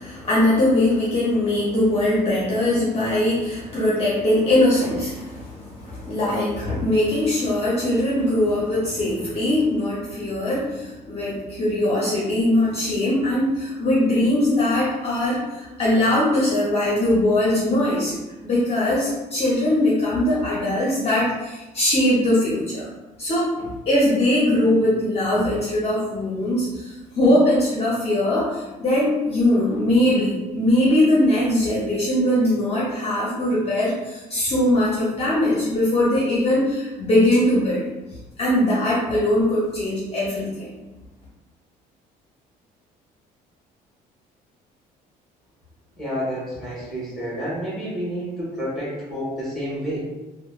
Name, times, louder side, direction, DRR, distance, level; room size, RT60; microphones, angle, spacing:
voice 1, 0.0-18.1 18.4-22.9 23.2-37.9 38.4-40.8, left 1 dB, 35° left, -6 dB, 0.6 m, -21 dB
voice 2, 46.0-50.0, equal, ahead, -7 dB, 1.4 m, -29 dB
2.9 x 2.1 x 2.3 m, 1.1 s
cardioid pair, 110°, 17 cm